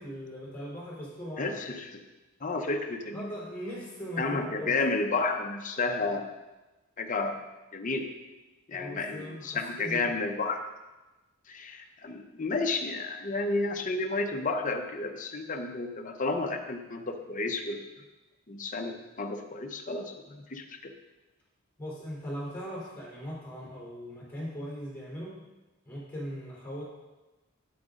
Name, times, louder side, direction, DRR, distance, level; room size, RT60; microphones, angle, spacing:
voice 1, 0.0-1.5 3.1-4.8 8.7-10.1 21.8-25.3 25.8-26.8, equal, 10° left, -5 dB, 3.3 m, -39 dB
voice 2, 1.4-2.0 2.4-3.3 4.2-6.3 7.0-7.4 7.7-8.1 8.7-10.6 11.5-17.8 18.5-20.9, left 3 dB, 40° left, 4 dB, 0.8 m, -31 dB
9.1 x 8.6 x 3.7 m, 1.1 s
head